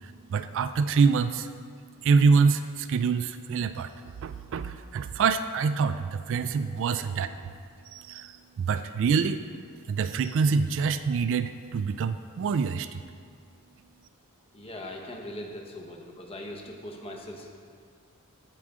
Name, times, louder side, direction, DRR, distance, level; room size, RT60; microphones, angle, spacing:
voice 1, 0.0-1.5 2.0-3.9 4.2-7.3 7.9-9.4 9.9-13.0, right 5 dB, 60° right, 11 dB, 0.3 m, -25 dB
voice 2, 14.5-17.6, left 1 dB, 25° left, 1 dB, 1.0 m, -40 dB
14.5 x 4.9 x 3.6 m, 2.1 s
head